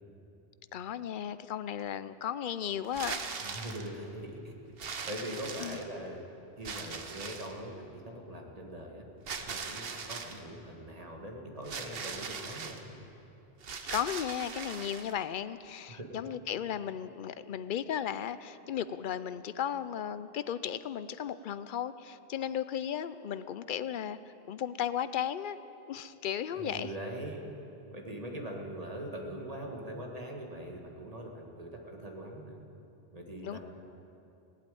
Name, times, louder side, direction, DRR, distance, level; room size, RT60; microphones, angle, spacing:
voice 1, 0.7-3.2 5.6-5.8 13.9-25.6 25.9-26.9 33.4-33.6, left 9 dB, 60° left, 14 dB, 0.6 m, -35 dB
sound 1, 2.8-3.9 4.8-6.1 6.6-7.6 9.3-10.4 11.6-12.8 13.6-15.1, right 5 dB, 65° right, 1.1 m, -40 dB
voice 2, 3.4-4.5 5.0-6.2 6.6-9.1 9.4-12.9 15.9-16.1 26.6-27.4 27.9-32.6 33.1-33.6, right 1 dB, 35° right, 1 dB, 1.8 m, -42 dB
17.5 x 8.7 x 9.2 m, 2.9 s
omnidirectional pair, 1.1 m